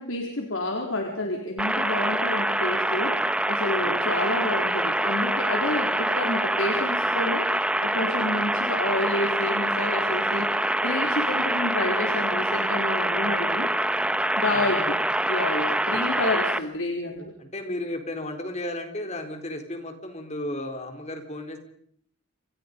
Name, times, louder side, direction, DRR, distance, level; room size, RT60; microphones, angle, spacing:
voice 1, 0.0-13.7 14.4-15.0 15.3-17.3, left 2 dB, 85° left, 2 dB, 4.1 m, -29 dB
sound 1, 1.6-16.6, right 1 dB, 5° right, 1.2 m, -25 dB
voice 2, 17.4-21.6, left 1 dB, 35° left, 6 dB, 4.3 m, -34 dB
29.0 x 27.0 x 5.4 m, 0.65 s
head